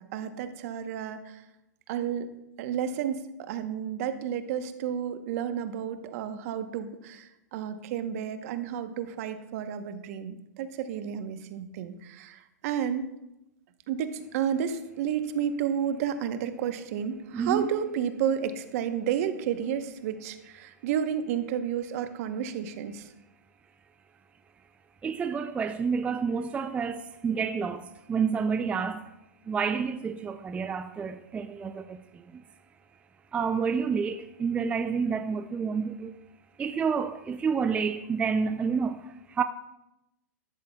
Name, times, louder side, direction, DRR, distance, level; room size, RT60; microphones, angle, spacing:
voice 1, 0.0-1.4 1.9-2.3 2.6-13.1 13.9-23.1, right 8 dB, 55° right, 0.9 m, -31 dB
voice 2, 17.3-17.7 25.0-29.1 29.5-32.0 32.3-32.4 33.3-36.1 36.6-39.4, right 6 dB, 15° right, 0.3 m, -29 dB
12.5 x 11.0 x 2.3 m
hypercardioid pair, 120°, 10 cm